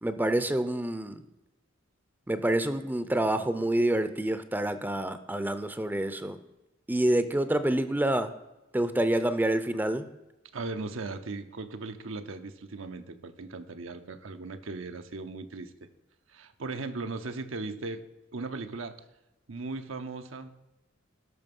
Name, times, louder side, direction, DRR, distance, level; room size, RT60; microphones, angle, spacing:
voice 1, 0.0-1.2 2.3-6.4 6.9-8.3 8.7-10.1, right 1 dB, 10° right, 11 dB, 0.5 m, -27 dB
voice 2, 10.5-15.9 16.3-18.0 18.3-19.0 19.5-20.5, right 3 dB, 80° right, 7 dB, 0.8 m, -38 dB
12.5 x 5.8 x 5.3 m, 0.98 s
head